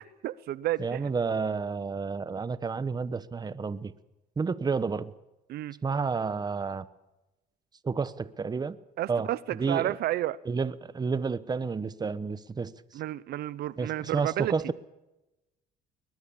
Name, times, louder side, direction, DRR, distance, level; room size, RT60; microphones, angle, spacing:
voice 1, 0.0-1.0 5.5-5.8 9.0-9.4 9.7-10.4 12.9-14.5, right 14 dB, 70° right, 0.7 m, -31 dB
voice 2, 0.8-3.9 4.4-5.1 5.8-6.9 7.8-8.8 9.1-10.0 10.4-13.0 13.8-14.7, right 5 dB, 25° right, 1.0 m, -30 dB
22.0 x 20.5 x 7.2 m
cardioid pair, 110°, 17 cm